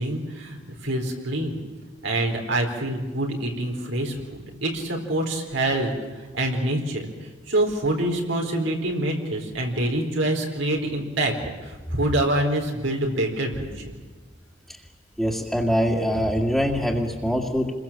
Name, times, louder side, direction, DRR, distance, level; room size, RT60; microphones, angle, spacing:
voice 1, 0.0-1.6 2.0-7.1 7.5-11.3 11.6-13.9, right 1 dB, 85° right, 1 dB, 4.1 m, -26 dB
voice 2, 15.2-17.7, equal, ahead, -5 dB, 2.1 m, -23 dB
28.5 x 22.5 x 7.5 m, 1.3 s
head